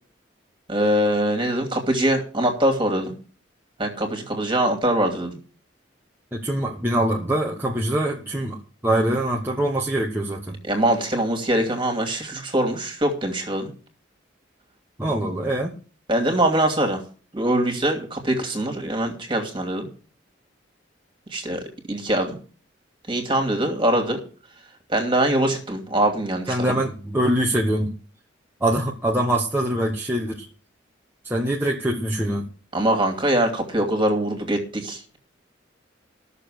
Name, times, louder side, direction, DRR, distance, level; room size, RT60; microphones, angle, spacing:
voice 1, 0.7-3.2 3.8-5.3 10.7-13.7 16.1-17.0 17.3-19.9 21.3-22.4 23.1-24.2 24.9-26.8 32.7-35.2, right 1 dB, 25° right, 3 dB, 2.6 m, -23 dB
voice 2, 6.3-10.6 15.0-15.7 26.5-27.9 28.6-30.5 31.2-32.5, right 1 dB, 10° right, -1 dB, 1.2 m, -24 dB
13.5 x 6.8 x 6.5 m, 0.39 s
head